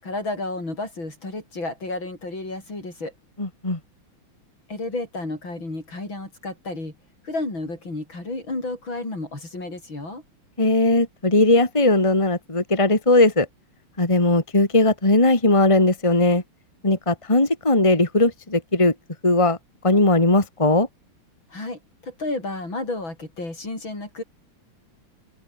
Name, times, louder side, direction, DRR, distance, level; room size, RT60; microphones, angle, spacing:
voice 1, 0.0-3.1 4.7-6.9 7.2-10.2 21.5-24.2, left 2 dB, 70° left, 8.7 m, -31 dB
voice 2, 3.4-3.8 10.6-13.5 14.0-16.4 16.8-18.9 19.2-19.6 19.8-20.9, left 2 dB, 15° left, 2.6 m, -18 dB
open air
omnidirectional pair, 2.2 m